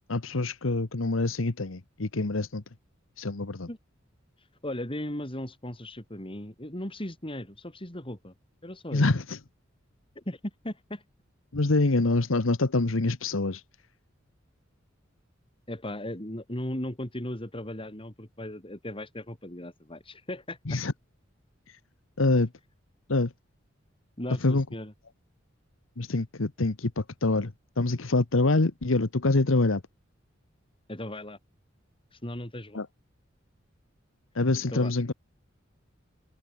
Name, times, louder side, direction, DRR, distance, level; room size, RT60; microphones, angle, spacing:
voice 1, 0.1-2.6 3.2-3.7 8.9-9.4 11.5-13.6 20.7-20.9 22.2-22.5 23.1-23.3 24.4-24.6 26.0-29.8 32.7-32.9 34.3-35.1, left 2 dB, 85° left, 1.2 m, -25 dB
voice 2, 4.4-8.3 8.6-9.0 10.2-11.0 15.7-20.8 24.2-24.9 30.9-31.4 32.1-32.8 34.7-34.9, left 1 dB, 25° left, 4.3 m, -37 dB
head